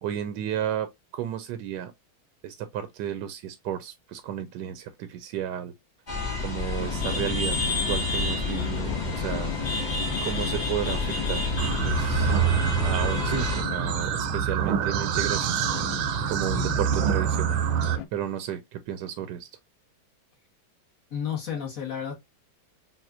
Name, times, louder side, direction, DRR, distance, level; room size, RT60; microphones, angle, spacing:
voice 1, 0.0-1.9 2.4-5.7 6.4-7.6 7.8-9.6 10.2-12.4 12.8-15.6 16.3-17.6 18.1-19.5, right 10 dB, 70° right, 1.0 m, -33 dB
sound 1, 6.1-13.6, equal, 30° left, 1.0 m, -28 dB
sound 2, 6.8-18.1, left 12 dB, 75° left, 1.2 m, -36 dB
sound 3, 11.6-18.0, right 9 dB, 90° right, 1.5 m, -27 dB
voice 2, 16.4-16.8 21.1-22.1, left 8 dB, 45° left, 1.4 m, -32 dB
5.7 x 2.3 x 2.5 m
omnidirectional pair, 2.3 m